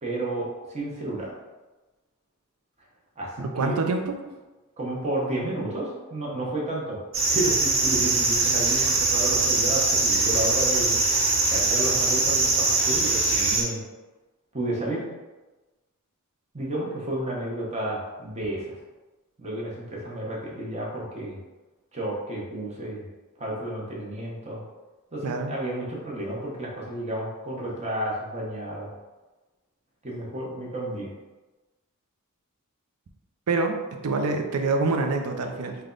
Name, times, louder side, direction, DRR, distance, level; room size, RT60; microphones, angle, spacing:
voice 1, 0.0-1.3 3.2-3.8 4.8-7.0 7.3-11.0 11.5-13.8 14.5-15.0 16.5-18.8 19.4-21.4 21.9-23.1 23.4-24.6 25.1-28.9 30.0-31.1, right 1 dB, 30° right, -4 dB, 0.8 m, -31 dB
voice 2, 3.4-4.1 25.2-25.5 33.5-33.8 34.0-35.8, right 3 dB, 85° right, 4 dB, 0.5 m, -25 dB
sound 1, 7.1-13.6, right 3 dB, 60° right, 0.8 m, -22 dB
3.4 x 2.2 x 3.8 m, 1.2 s
head